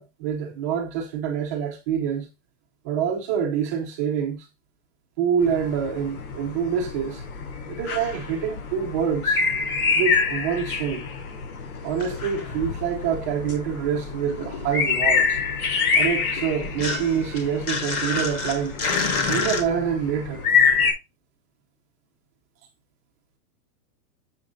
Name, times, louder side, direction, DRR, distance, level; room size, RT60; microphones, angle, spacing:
voice 1, 0.0-2.3 2.8-4.5 5.2-7.2 7.7-9.4 10.0-11.1 11.8-15.4 15.9-18.8 19.2-20.5, right 8 dB, 10° right, 0.5 m, -26 dB
sound 1, 5.4-20.9, left 5 dB, 65° left, 4.6 m, -27 dB
sound 2, 11.8-13.7 14.0-19.6, left 4 dB, 20° left, 1.5 m, -30 dB
7.6 x 6.4 x 3.9 m
supercardioid pair, 170°, 46 cm